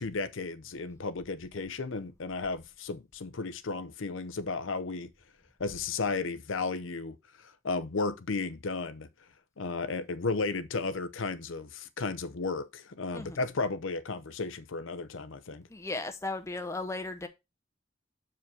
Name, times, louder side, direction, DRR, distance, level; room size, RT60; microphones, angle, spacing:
voice 1, 0.0-5.1 5.6-7.2 7.6-9.1 9.6-15.7, left 3 dB, 80° left, 0.7 m, -34 dB
voice 2, 15.7-17.3, left 2 dB, 15° left, 0.7 m, -36 dB
7.1 x 4.9 x 4.7 m
head